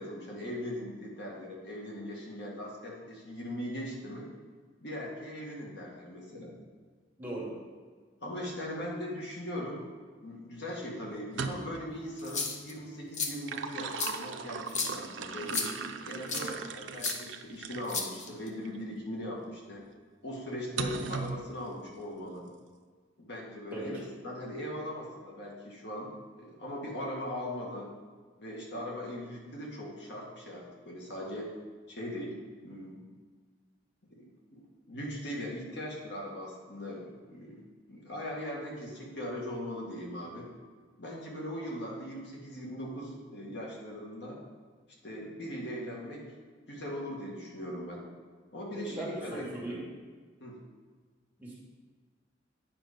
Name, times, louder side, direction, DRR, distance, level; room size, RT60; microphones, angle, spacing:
voice 1, 0.0-4.3 4.8-6.6 8.2-10.0 10.2-15.7 16.1-19.9 20.2-22.5 23.2-24.0 24.2-26.1 26.4-27.9 28.4-31.5 31.9-33.0 34.1-37.6 37.9-40.5 41.0-44.4 45.0-46.3 46.7-48.1 48.5-49.8 50.4-50.6, equal, 65° left, -3 dB, 1.9 m, -40 dB
voice 2, 7.2-7.5 23.7-23.9 48.7-49.8 51.4-51.5, right 2 dB, 10° right, -6 dB, 2.4 m, -38 dB
sound 1, 11.2-11.9 13.2-18.0 18.7-18.8 20.8-21.4, right 5 dB, 75° right, 0.6 m, -38 dB
sound 2, 12.2-12.7 13.1-13.3 14.0-14.1 14.7-14.9 15.5-15.7 16.3-16.5 17.0-17.1 17.9-18.5, left 4 dB, 40° left, 0.9 m, -32 dB
9.3 x 5.7 x 5.2 m, 1.5 s
head